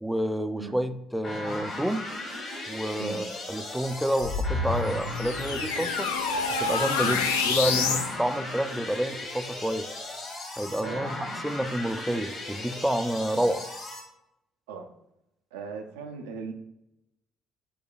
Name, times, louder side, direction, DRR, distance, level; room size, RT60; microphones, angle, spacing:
voice 1, 0.0-2.0 2.7-6.1 6.6-9.9 10.6-11.1 11.4-13.6, right 1 dB, 5° right, 9 dB, 0.3 m, -29 dB
sound 1, 1.2-14.0, left 1 dB, 45° left, 1.2 m, -37 dB
sound 2, 4.2-8.1, left 4 dB, 75° left, 0.5 m, -27 dB
voice 2, 15.5-16.5, right 5 dB, 70° right, 4 dB, 0.5 m, -38 dB
4.7 x 2.2 x 4.8 m, 0.84 s
figure-of-eight pair, 50°, 0 cm